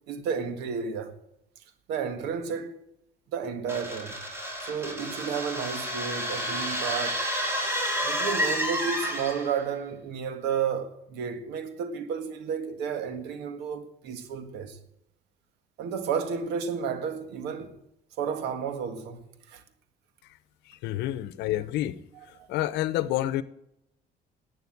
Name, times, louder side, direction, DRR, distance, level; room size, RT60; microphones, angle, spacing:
voice 1, 0.1-1.1 1.9-2.8 3.3-4.2 4.6-7.3 8.0-14.8 15.8-17.8 18.2-19.6 22.3-22.5, right 6 dB, 90° right, 1.8 m, -32 dB
sound 1, 3.7-9.6, equal, 15° right, 3.8 m, -30 dB
voice 2, 20.7-22.0 22.5-23.4, left 14 dB, 90° left, 0.9 m, -28 dB
11.5 x 8.8 x 8.6 m
cardioid pair, 110°, 17 cm